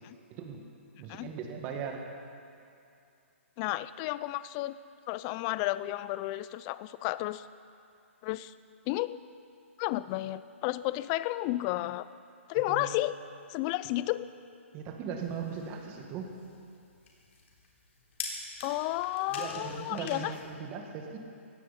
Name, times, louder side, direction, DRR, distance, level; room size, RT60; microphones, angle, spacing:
voice 1, 0.3-0.6 1.0-2.0 12.7-12.9 14.7-16.3 19.3-21.2, right 6 dB, 25° right, 2 dB, 1.9 m, -38 dB
voice 2, 3.6-4.8 5.1-7.4 8.2-8.5 8.9-9.2 9.8-12.1 12.5-13.2 13.5-14.3 18.6-20.3, left 17 dB, 25° left, 16 dB, 0.4 m, -32 dB
sound 1, 15.2-20.5, left 3 dB, 65° left, 3.7 m, -45 dB
18.5 x 15.5 x 4.3 m, 2.5 s
hypercardioid pair, 150°, 7 cm